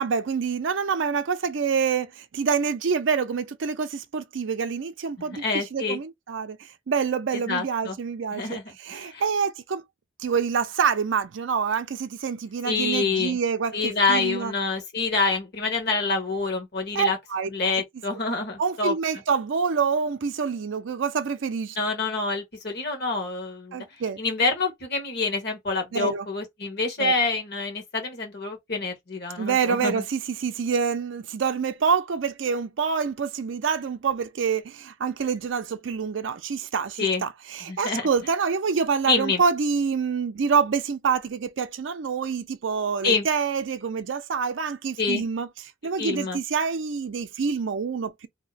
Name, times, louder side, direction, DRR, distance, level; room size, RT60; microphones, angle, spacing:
voice 1, 0.0-9.8 10.2-14.5 16.9-17.5 18.6-21.8 23.7-24.2 25.9-26.3 27.0-27.1 29.4-45.5 45.8-48.3, right 6 dB, 65° right, 0.4 m, -26 dB
voice 2, 5.2-6.0 7.5-8.0 8.3-8.6 8.9-9.2 12.6-13.4 13.7-17.2 17.5-18.9 21.8-23.8 24.2-30.0 37.0-37.2 37.7-38.1 39.1-39.4 43.0-43.3 45.0-45.2 46.0-46.4, left 3 dB, 55° left, 1.2 m, -26 dB
2.8 x 2.1 x 4.0 m
head